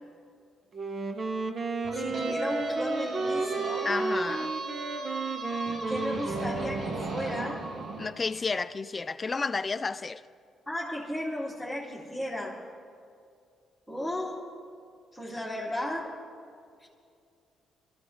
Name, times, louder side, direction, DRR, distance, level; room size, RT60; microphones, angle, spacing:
Wind instrument woodwind instrument, 0.7-7.5, right 3 dB, 45° right, 1.1 m, -33 dB
sound 1, 1.8-8.1, right 2 dB, 60° right, 1.5 m, -35 dB
voice 1, 1.9-3.9 5.6-7.7 10.7-12.7 13.9-14.5 15.1-16.2 16.8-16.9, left 1 dB, 5° right, 2.4 m, -35 dB
voice 2, 3.8-4.5 8.0-10.2, left 4 dB, 30° left, 0.5 m, -31 dB
23.0 x 13.5 x 3.2 m
cardioid pair, 90°, 0 cm